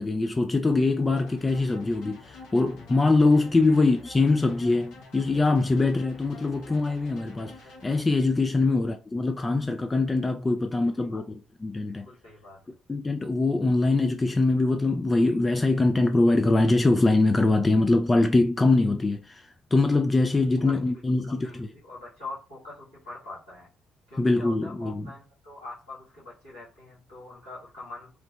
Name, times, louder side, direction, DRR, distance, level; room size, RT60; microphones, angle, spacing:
voice 1, 0.0-7.6 7.8-12.1 12.9-21.7 24.2-25.0, left 2 dB, 25° left, 0.3 m, -23 dB
sound 1, 1.2-8.0, left 3 dB, 65° left, 0.7 m, -48 dB
voice 2, 10.9-11.2 11.8-12.7 20.6-23.7 24.1-28.1, left 2 dB, 85° left, 1.4 m, -44 dB
3.1 x 2.0 x 2.8 m
figure-of-eight pair, 45°, 0 cm